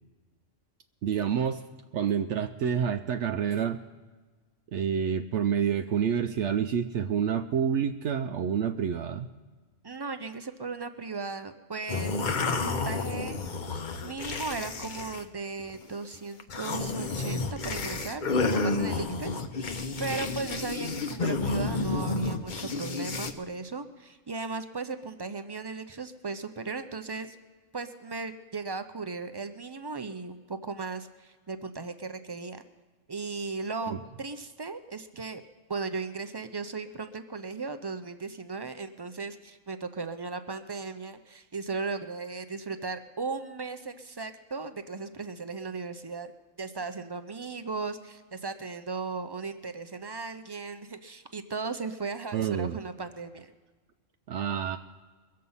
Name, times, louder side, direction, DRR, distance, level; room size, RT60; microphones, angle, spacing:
voice 1, 1.0-1.6 1.9-3.8 4.7-9.3 33.9-34.0 52.3-52.8 54.3-54.8, right 8 dB, 70° right, 7 dB, 0.8 m, -28 dB
voice 2, 9.8-12.2 12.5-13.4 14.0-27.4 27.7-32.6 33.1-35.4 35.7-46.3 46.6-53.5, right 4 dB, 35° right, 9 dB, 0.4 m, -37 dB
sound 1, 11.9-15.3 15.6-15.9 16.4-23.3, left 3 dB, 45° left, 0.9 m, -31 dB
22.0 x 7.6 x 5.5 m, 1.4 s
omnidirectional pair, 1.3 m